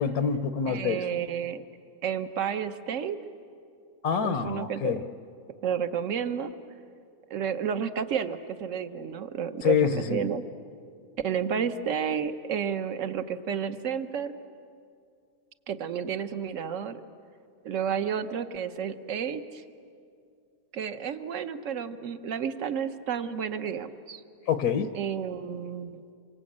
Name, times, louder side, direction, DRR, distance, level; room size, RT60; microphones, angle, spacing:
voice 1, 0.0-1.0 4.0-5.0 9.6-10.2 24.5-24.9, left 7 dB, 80° left, 11 dB, 1.4 m, -26 dB
voice 2, 0.7-1.6 2.0-3.2 4.2-5.0 5.6-6.5 7.3-10.4 11.2-14.3 15.7-17.0 17.6-19.6 20.7-24.2 24.9-26.0, right 7 dB, 60° right, 10 dB, 1.3 m, -31 dB
27.0 x 24.0 x 8.7 m, 2.4 s
omnidirectional pair, 1.6 m